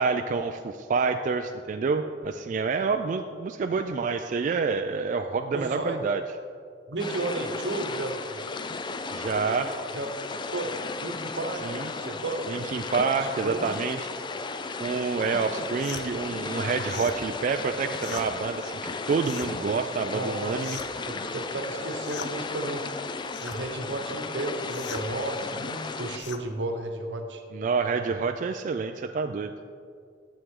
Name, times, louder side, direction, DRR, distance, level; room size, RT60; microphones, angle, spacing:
voice 1, 0.0-6.2 9.1-9.8 11.6-11.9 12.5-14.1 14.8-20.8 27.5-29.5, right 4 dB, 45° right, 6 dB, 0.3 m, -28 dB
voice 2, 5.5-6.0 6.9-8.4 9.9-10.1 10.5-10.7 11.0-12.5 12.9-13.7 20.1-20.8 21.1-22.9 23.4-27.4, right 2 dB, 80° right, 4 dB, 1.0 m, -33 dB
sound 1, 7.0-26.2, left 4 dB, 25° left, 0.4 m, -35 dB
sound 2, 15.8-16.1 16.8-17.2 18.0-18.3 19.2-19.5 20.6-21.0 22.0-22.3 23.3-23.6 24.7-25.1 26.2-26.4, left 6 dB, 80° left, 0.6 m, -39 dB
9.7 x 7.3 x 3.7 m, 2.2 s
head